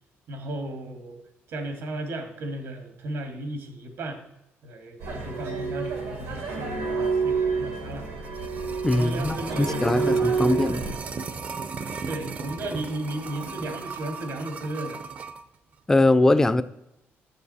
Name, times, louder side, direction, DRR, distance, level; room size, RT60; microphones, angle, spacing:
voice 1, 0.3-1.2 1.5-4.2 4.6-8.1 8.9-11.2 12.1-15.0, right 1 dB, 70° right, 6 dB, 1.7 m, -35 dB
sound 1, 5.0-10.9, right 5 dB, 90° right, 2.6 m, -28 dB
sound 2, 8.0-15.4 15.7-15.8, right 5 dB, 35° right, 0.6 m, -36 dB
voice 2, 8.8-10.9 15.9-16.6, left 2 dB, 10° left, 12 dB, 0.4 m, -21 dB
9.3 x 7.1 x 4.1 m, 0.86 s
cardioid pair, 145°, 5 cm